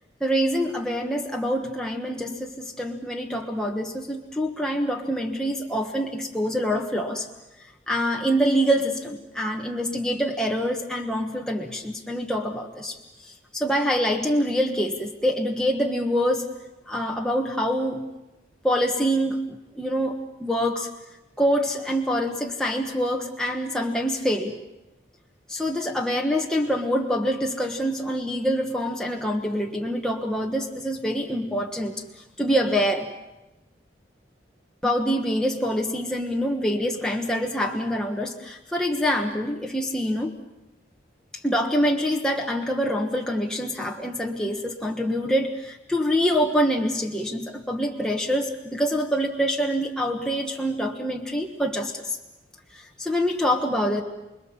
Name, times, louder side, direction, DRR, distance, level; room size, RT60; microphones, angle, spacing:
voice 1, 0.2-7.3 7.9-16.5 16.9-18.0 18.6-20.1 20.4-20.9 21.4-24.5 25.5-32.0 32.4-33.1 34.8-40.4 41.4-52.2 52.7-54.0, equal, 5° left, 0 dB, 1.4 m, -25 dB
29.5 x 21.0 x 7.4 m, 1.0 s
head